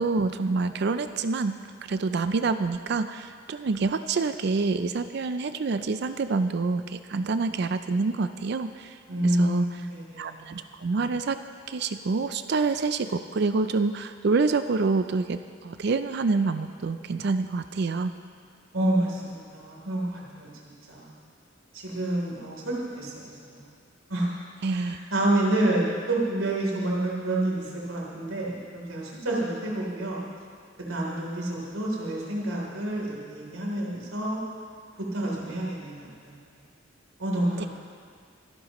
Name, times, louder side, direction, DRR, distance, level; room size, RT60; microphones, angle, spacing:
voice 1, 0.0-9.9 10.2-11.4 11.7-18.1 24.6-25.0 37.6-37.7, right 4 dB, 55° right, 10 dB, 0.4 m, -27 dB
voice 2, 9.1-10.6 18.7-20.5 20.9-21.1 21.7-23.1 23.4-23.6 24.1-24.3 24.7-30.2 30.9-34.4 35.1-36.3 37.2-37.7, right 1 dB, 85° right, -3 dB, 3.4 m, -28 dB
24.0 x 11.5 x 3.1 m, 2.1 s
head